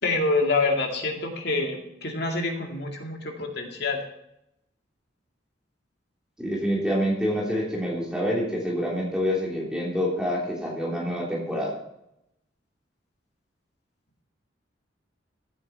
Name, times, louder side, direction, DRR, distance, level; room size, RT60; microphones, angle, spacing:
voice 1, 0.0-4.0, left 3 dB, 60° left, 3 dB, 2.2 m, -26 dB
voice 2, 6.4-11.8, equal, 5° right, -4 dB, 3.2 m, -27 dB
14.5 x 9.1 x 4.4 m, 0.83 s
head